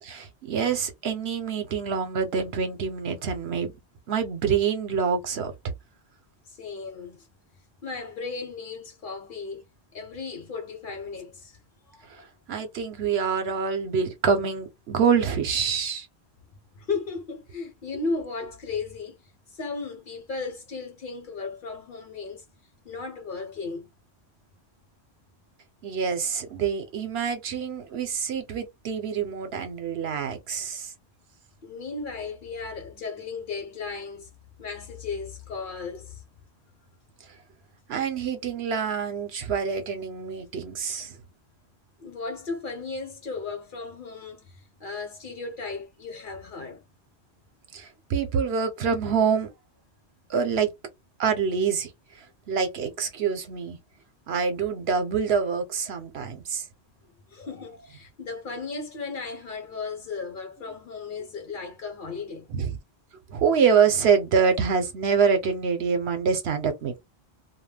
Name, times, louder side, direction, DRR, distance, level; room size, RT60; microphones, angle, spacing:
voice 1, 0.0-3.7 4.1-5.7 12.2-16.1 25.8-30.9 37.9-41.2 47.7-49.5 50.3-50.7 51.2-51.9 52.5-53.8 54.3-56.6 62.5-62.8 63.3-67.0, right 6 dB, 70° right, 0.9 m, -26 dB
voice 2, 6.5-7.3 7.8-9.7 9.9-11.6 11.9-12.3 16.8-19.2 19.5-22.4 22.8-23.9 31.6-34.3 34.6-36.2 42.0-46.8 57.3-62.5, left 4 dB, 50° left, 0.9 m, -35 dB
2.3 x 2.1 x 3.2 m
omnidirectional pair, 1.2 m